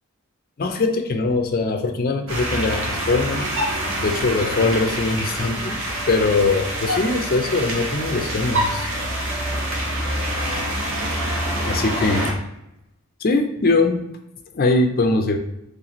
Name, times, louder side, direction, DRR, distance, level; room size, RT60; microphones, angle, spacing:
voice 1, 0.6-3.5 4.0-5.8 6.1-8.9 11.7-12.3 13.2-14.0 14.5-15.4, left 3 dB, 45° left, 5 dB, 0.5 m, -21 dB
sound 1, 2.3-12.3, right 1 dB, 65° right, 1.0 m, -26 dB
4.1 x 3.3 x 2.9 m, 0.86 s
head